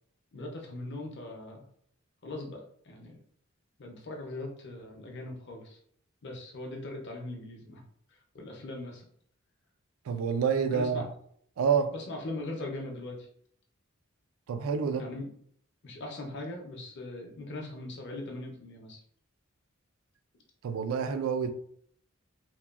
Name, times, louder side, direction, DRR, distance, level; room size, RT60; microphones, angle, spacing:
voice 1, 0.3-1.7 2.2-3.2 3.8-5.8 6.2-7.8 8.3-9.0 10.7-11.0 11.9-13.3 15.0-15.3 15.8-19.0, left 2 dB, 55° left, 1 dB, 0.6 m, -40 dB
voice 2, 10.1-11.1 11.6-11.9 14.5-15.1 20.6-21.5, right 6 dB, 75° right, 9 dB, 0.3 m, -28 dB
2.9 x 2.2 x 2.3 m, 0.63 s
head